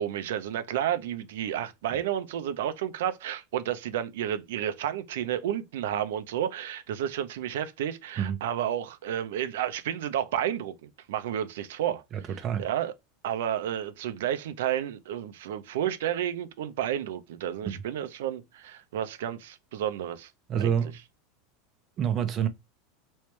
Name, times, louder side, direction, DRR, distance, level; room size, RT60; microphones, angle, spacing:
voice 1, 0.0-12.0 12.3-12.9 13.2-20.3 20.6-20.7, right 10 dB, 85° right, 0.6 m, -31 dB
voice 2, 20.5-20.9 22.0-22.5, right 8 dB, 30° right, 0.6 m, -27 dB
3.2 x 3.1 x 3.1 m
supercardioid pair, 155°, 0 cm